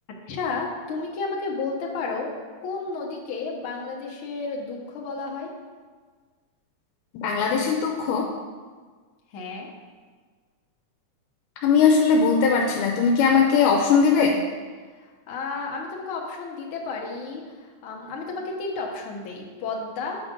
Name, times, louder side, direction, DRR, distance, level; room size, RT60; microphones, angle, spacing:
voice 1, 0.3-2.3 2.6-5.5 9.3-9.7 15.3-20.2, left 4 dB, 70° left, -2 dB, 1.3 m, -32 dB
voice 2, 7.1-8.3 11.6-14.4, left 5 dB, 85° left, 1 dB, 2.1 m, -19 dB
8.0 x 5.1 x 3.7 m, 1.5 s
omnidirectional pair, 3.6 m